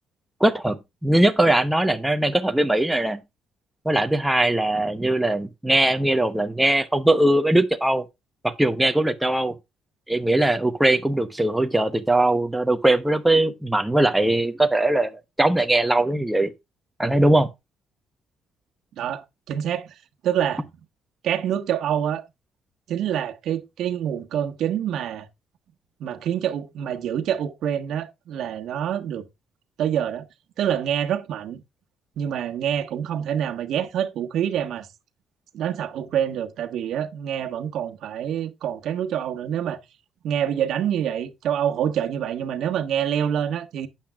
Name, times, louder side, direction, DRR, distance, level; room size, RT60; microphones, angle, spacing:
voice 1, 0.4-0.8 1.0-3.2 3.8-8.0 8.4-9.5 10.1-15.1 15.4-16.5 17.0-17.5, right 1 dB, 5° right, 0.8 m, -20 dB
voice 2, 19.0-19.9 20.2-20.7 21.2-22.2 22.9-25.3 26.0-29.2 29.8-30.2 30.6-31.6 32.2-34.9 35.5-39.8 40.2-43.9, right 9 dB, 65° right, 1.3 m, -26 dB
12.0 x 8.7 x 2.4 m
cardioid pair, 140°, 0 cm